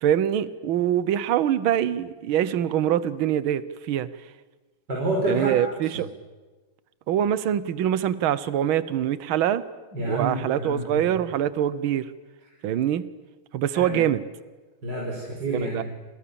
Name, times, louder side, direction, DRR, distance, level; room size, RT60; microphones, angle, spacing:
voice 1, 0.0-4.1 5.3-6.1 7.1-9.6 10.0-12.1 12.6-13.1 13.5-14.2 15.5-15.8, right 10 dB, 70° right, 15 dB, 1.8 m, -24 dB
voice 2, 4.9-5.6 5.9-6.0 9.9-11.1 13.7-14.0 14.8-15.8, right 1 dB, 50° right, -3 dB, 5.9 m, -28 dB
29.5 x 27.5 x 7.1 m, 1.3 s
omnidirectional pair, 2.4 m